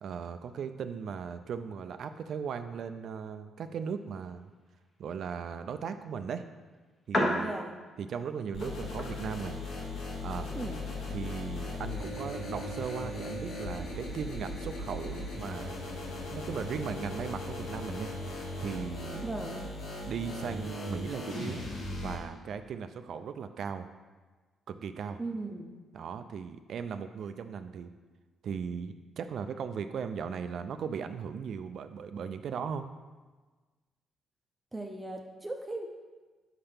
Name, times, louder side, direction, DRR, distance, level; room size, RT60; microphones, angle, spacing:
voice 1, 0.0-4.5 5.0-6.4 7.1-7.5 8.0-9.6 10.2-10.5 11.1-15.8 16.3-18.1 18.4-19.3 20.1-21.7 22.0-23.9 24.7-25.2 25.9-27.9 28.4-32.9, right 6 dB, 65° right, 9 dB, 0.3 m, -37 dB
sound 1, 3.5-21.7, left 1 dB, 35° left, 1.0 m, -42 dB
voice 2, 7.4-7.7 10.5-10.8 19.2-19.6 25.2-25.7 34.7-35.9, right 2 dB, 20° right, 3 dB, 0.5 m, -37 dB
sound 2, 8.5-22.1, left 2 dB, 70° left, 1.2 m, -38 dB
5.6 x 3.4 x 5.6 m, 1.3 s
cardioid pair, 90°, 0 cm